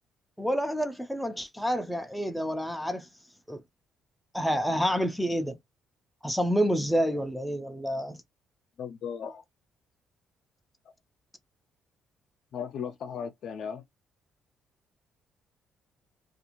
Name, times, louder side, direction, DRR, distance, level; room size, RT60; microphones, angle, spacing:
voice 1, 0.4-3.1 3.5-3.6 4.3-5.6 6.2-8.2, equal, ahead, 0.4 m, -28 dB
voice 2, 8.8-9.4 10.8-10.9 12.5-13.8, left 7 dB, 60° left, 0.5 m, -36 dB
2.5 x 2.4 x 2.9 m
cardioid pair, 125°, 0 cm